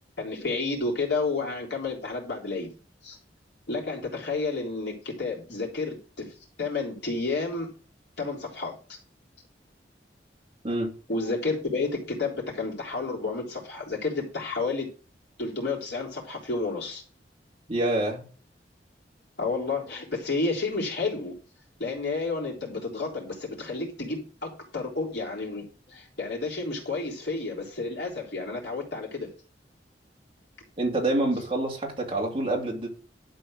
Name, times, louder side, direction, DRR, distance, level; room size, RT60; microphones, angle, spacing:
voice 1, 0.2-2.7 3.0-3.2 3.7-7.7 8.2-9.0 11.1-14.9 15.4-17.0 19.4-21.4 21.8-29.3, left 3 dB, 70° left, 3.6 m, -31 dB
voice 2, 17.7-18.3 30.8-32.9, right 2 dB, 30° right, 2.6 m, -27 dB
11.5 x 4.4 x 6.2 m
head